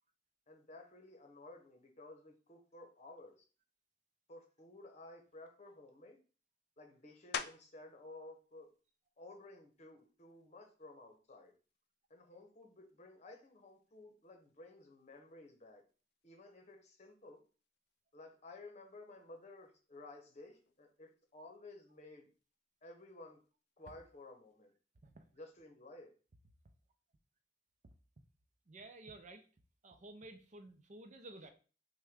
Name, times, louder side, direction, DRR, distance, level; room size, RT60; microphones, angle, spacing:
voice 1, 0.5-3.4 4.3-6.2 6.8-8.7 9.2-11.5 12.1-15.8 16.2-17.4 18.1-22.3 22.8-23.4 23.8-24.7 25.3-26.1, left 2 dB, 40° left, 3 dB, 0.9 m, -55 dB
sound 1, 7.3-7.9 8.5-12.9 13.4-18.6 18.9-24.5, left 7 dB, 60° left, 0.4 m, -52 dB
voice 2, 28.7-29.4 29.8-31.5, right 2 dB, 40° right, 7 dB, 0.6 m, -53 dB
6.1 x 2.2 x 3.5 m, 0.38 s
head